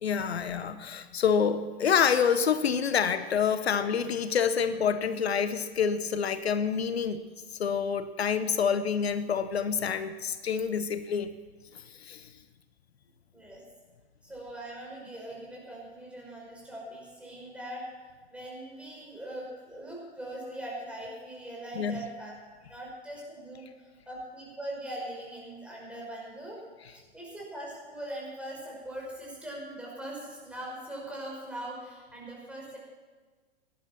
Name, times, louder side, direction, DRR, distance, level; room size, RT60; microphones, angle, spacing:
voice 1, 0.0-11.3 11.7-12.3 21.8-22.0, left 7 dB, 80° left, 12 dB, 0.9 m, -27 dB
voice 2, 13.3-13.6 14.2-17.9 18.3-22.3 22.7-32.8, right 1 dB, 5° right, -4 dB, 5.5 m, -41 dB
17.5 x 11.5 x 5.9 m, 1.4 s
hypercardioid pair, 115°, 32 cm